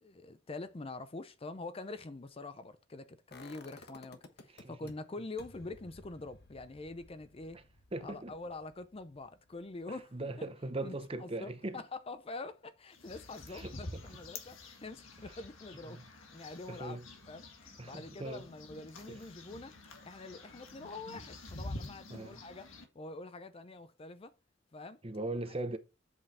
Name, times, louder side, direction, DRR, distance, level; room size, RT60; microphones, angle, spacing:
voice 1, 0.0-7.6 8.0-10.5 10.8-17.0 17.3-19.8 20.0-22.7 22.9-24.3 24.7-25.0, left 3 dB, 30° left, 0.5 m, -45 dB
sound 1, 3.3-4.9 5.4-11.2 11.5-11.6, left 2 dB, 55° left, 1.3 m, -57 dB
voice 2, 4.5-4.9 7.9-8.3 10.1-11.8 13.5-13.7 15.9-16.0 16.7-17.1 17.8-18.5 19.1-19.2 22.1-22.4 25.0-25.8, right 2 dB, 30° right, 0.8 m, -39 dB
sound 2, 12.9-22.8, left 2 dB, 85° left, 1.7 m, -48 dB
8.0 x 5.4 x 4.2 m
head